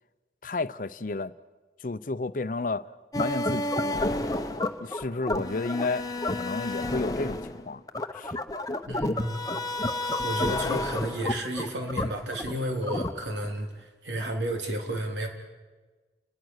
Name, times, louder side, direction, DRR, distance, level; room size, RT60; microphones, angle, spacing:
voice 1, 0.4-1.3 1.8-2.9 3.2-4.0 4.8-7.8 8.1-8.4, left 3 dB, 50° left, 0.6 m, -32 dB
sound 1, 3.1-13.5, left 1 dB, 20° left, 0.9 m, -30 dB
voice 2, 8.9-9.4 10.2-15.3, right 1 dB, 85° right, 3.7 m, -32 dB
29.5 x 20.0 x 6.5 m
head